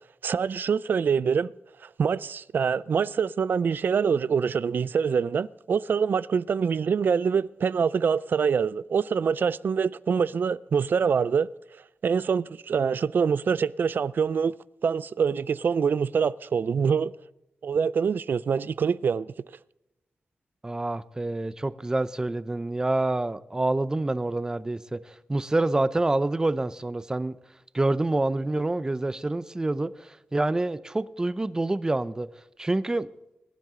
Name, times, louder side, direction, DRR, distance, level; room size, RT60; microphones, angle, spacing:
voice 1, 0.2-1.5 1.8-11.5 12.0-14.5 14.8-17.1 17.6-19.3, right 6 dB, 65° right, 0.4 m, -25 dB
voice 2, 20.6-27.4 27.7-32.3 32.6-33.1, right 2 dB, 20° right, 0.6 m, -27 dB
21.5 x 10.5 x 3.8 m
wide cardioid pair, 135°, 4 cm